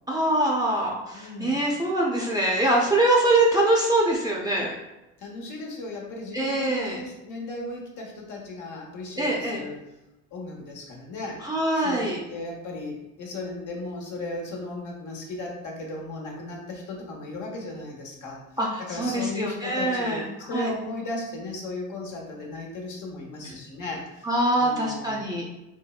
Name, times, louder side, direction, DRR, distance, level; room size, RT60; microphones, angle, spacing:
voice 1, 0.1-4.8 6.3-7.0 9.2-9.6 11.4-12.2 18.6-20.2 20.5-20.7 23.4-23.5 24.2-25.4, right 1 dB, 10° right, -4 dB, 0.5 m, -24 dB
voice 2, 1.1-1.6 5.2-9.8 10.3-11.4 11.7-18.4 18.8-24.3 24.6-25.2, left 2 dB, 55° left, -1 dB, 1.0 m, -36 dB
4.2 x 2.0 x 2.3 m, 0.99 s
supercardioid pair, 90°, 37 cm